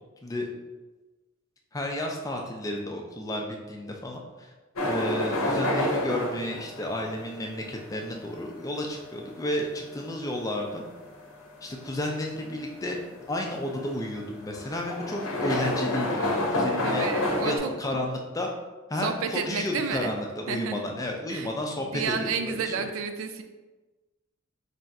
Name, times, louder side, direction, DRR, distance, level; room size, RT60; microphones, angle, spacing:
voice 1, 1.7-4.5 4.9-10.8 11.6-13.0 13.3-17.1 17.4-18.5 18.9-22.9, left 1 dB, 15° left, 1 dB, 0.4 m, -32 dB
sound 1, 4.8-17.6, left 1 dB, 85° left, 0.7 m, -30 dB
voice 2, 16.8-17.7 19.0-20.1 20.5-20.9 21.3-23.4, right 5 dB, 70° right, 7 dB, 0.3 m, -31 dB
3.3 x 2.4 x 4.1 m, 1.2 s
head